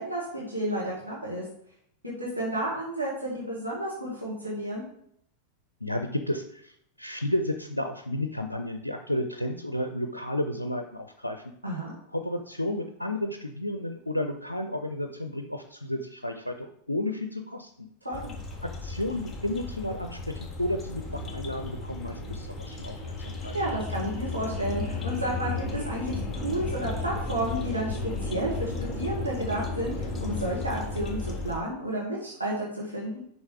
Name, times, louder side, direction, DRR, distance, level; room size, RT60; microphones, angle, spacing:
voice 1, 0.0-1.4 2.0-4.8 11.6-11.9 18.0-18.3 23.5-33.2, right 1 dB, 85° right, -4 dB, 1.6 m, -31 dB
voice 2, 5.8-11.4 12.1-17.9 18.6-23.5, left 1 dB, 85° left, 5 dB, 0.5 m, -32 dB
sound 1, 18.1-31.6, left 3 dB, 10° left, 1.7 m, -34 dB
6.4 x 5.4 x 4.8 m, 0.70 s
figure-of-eight pair, 90°, 0 cm